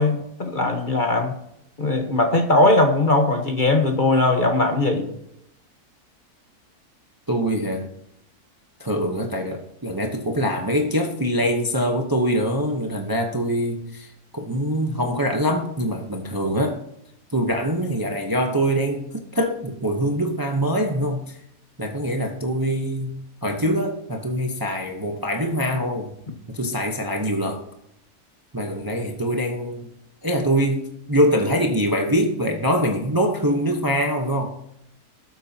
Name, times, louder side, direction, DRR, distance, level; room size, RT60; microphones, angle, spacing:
voice 1, 0.0-1.3 1.8-5.1, left 2 dB, 35° left, 4 dB, 1.3 m, -19 dB
voice 2, 7.3-7.8 8.8-14.1 14.3-16.8 17.3-21.2 21.8-23.1 23.4-26.1 26.5-27.6 28.5-29.9 30.2-34.6, equal, 15° right, 2 dB, 0.9 m, -23 dB
18.0 x 8.5 x 2.9 m, 0.77 s
omnidirectional pair, 1.6 m